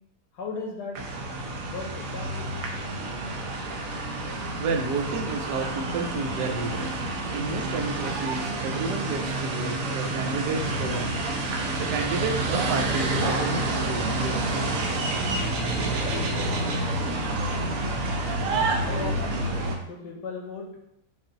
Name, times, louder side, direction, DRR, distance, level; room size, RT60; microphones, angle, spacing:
voice 1, 0.3-1.0 1.6-2.5 3.3-3.9 18.5-20.7, left 4 dB, 90° left, -1 dB, 1.6 m, -37 dB
sound 1, 0.9-19.8, right 2 dB, 65° right, 1.0 m, -28 dB
voice 2, 4.5-7.0 7.3-11.2 11.7-14.6, right 3 dB, 85° right, 3 dB, 1.3 m, -31 dB
5.3 x 2.5 x 3.9 m, 0.78 s
omnidirectional pair, 1.7 m